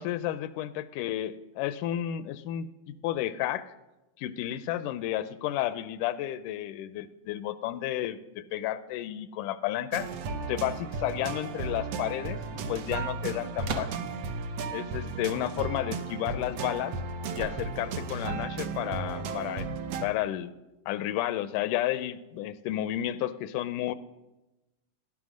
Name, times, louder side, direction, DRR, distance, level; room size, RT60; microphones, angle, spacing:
voice 1, 0.0-3.6 4.2-10.1 10.5-13.9 14.7-17.0 17.4-19.7 20.0-20.5 20.9-23.9, left 13 dB, 85° left, 14 dB, 2.1 m, -32 dB
sound 1, 9.9-20.1, right 4 dB, 70° right, 1.7 m, -35 dB
sound 2, 13.6-14.3 17.3-18.1, right 4 dB, 90° right, 1.0 m, -37 dB
17.0 x 10.5 x 6.3 m, 1.0 s
omnidirectional pair, 3.7 m